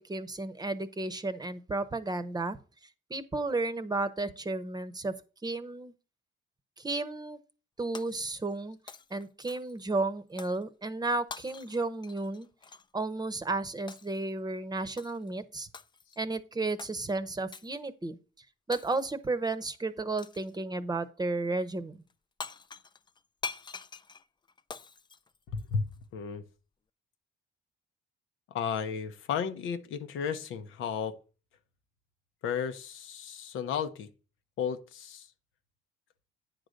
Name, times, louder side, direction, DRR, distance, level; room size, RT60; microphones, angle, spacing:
voice 1, 0.0-2.6 3.1-5.1 5.4-5.9 6.8-7.4 7.8-8.8 9.1-12.5 12.9-15.7 16.2-18.2 18.7-22.0, right 2 dB, 20° right, 0.9 m, -33 dB
Shatter, 7.9-8.6 8.9-9.8 10.4-10.6 11.3-12.9 13.9-14.2 15.0-15.3 15.7-16.2 16.8-17.0 17.5-17.8 18.7-19.3 20.2-20.5 22.1-22.2 22.4-26.0, left 4 dB, 20° left, 0.4 m, -45 dB
voice 2, 25.5-26.4 28.5-31.1 32.4-34.1 34.6-35.3, left 7 dB, 85° left, 0.9 m, -33 dB
9.7 x 3.9 x 6.4 m
cardioid pair, 90°, 20 cm